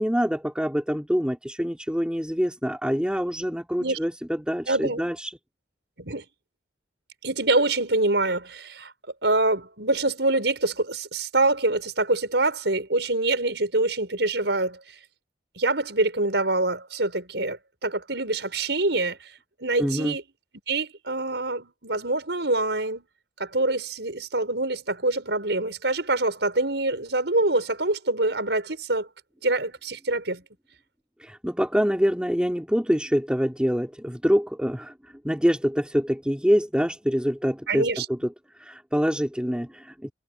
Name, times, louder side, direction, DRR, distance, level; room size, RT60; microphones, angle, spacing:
voice 1, 0.0-5.4 19.8-20.2 31.2-40.1, equal, 5° right, 4.1 m, -25 dB
voice 2, 4.7-5.0 6.0-6.2 7.2-8.9 9.2-14.8 15.6-19.3 19.6-20.2 20.7-23.1 23.4-29.1 29.4-30.4 37.7-38.1, right 2 dB, 75° right, 5.9 m, -25 dB
head